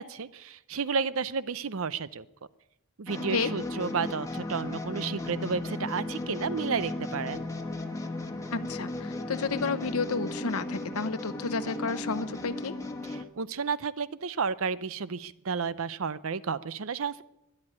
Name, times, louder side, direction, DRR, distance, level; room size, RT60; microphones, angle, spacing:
voice 1, 0.0-2.3 3.0-7.4 13.1-17.2, right 5 dB, 65° right, 16 dB, 0.6 m, -32 dB
sound 1, 3.1-13.2, left 2 dB, 15° left, 1.2 m, -35 dB
voice 2, 8.5-12.7, left 4 dB, 70° left, 11 dB, 0.8 m, -31 dB
13.0 x 11.0 x 9.8 m, 0.91 s
head